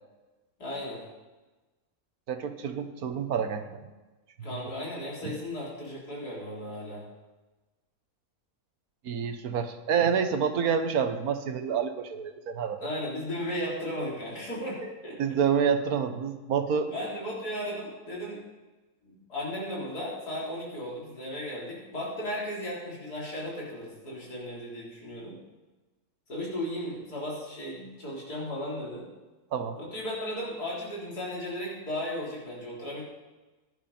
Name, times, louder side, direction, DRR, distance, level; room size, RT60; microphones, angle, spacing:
voice 1, 0.6-1.0 4.4-7.0 12.8-15.2 16.9-18.4 19.0-25.4 26.3-29.1 29.8-33.0, left 1 dB, 90° left, -5 dB, 4.5 m, -35 dB
voice 2, 2.3-3.8 4.4-4.5 5.2-5.3 9.0-12.9 15.2-16.9 29.5-29.8, right 7 dB, 70° right, 9 dB, 1.4 m, -28 dB
16.0 x 11.0 x 4.3 m, 1.2 s
omnidirectional pair, 1.6 m